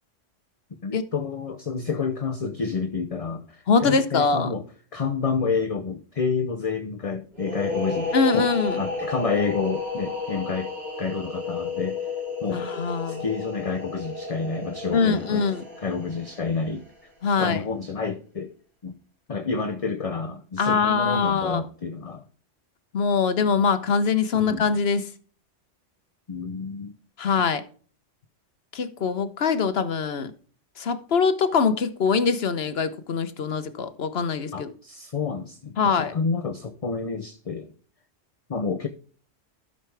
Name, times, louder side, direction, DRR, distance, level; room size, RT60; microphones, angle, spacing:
voice 1, 0.8-4.6 4.9-8.5 8.8-10.7 11.0-12.0 12.4-12.6 13.1-15.5 15.8-16.8 17.4-18.5 18.8-18.9 19.3-22.2 24.3-24.7 26.3-27.0 34.5-37.7 38.5-38.9, left 5 dB, 35° left, 0.7 m, -29 dB
voice 2, 3.7-4.5 8.1-8.8 12.5-13.2 14.9-15.6 17.2-17.6 20.6-21.6 22.9-25.0 27.2-27.6 28.7-30.3 30.8-34.7 35.8-36.2, left 5 dB, 60° left, 1.1 m, -23 dB
sound 1, 7.4-16.9, left 4 dB, 55° right, 4.1 m, -32 dB
12.5 x 6.6 x 3.3 m
omnidirectional pair, 1.3 m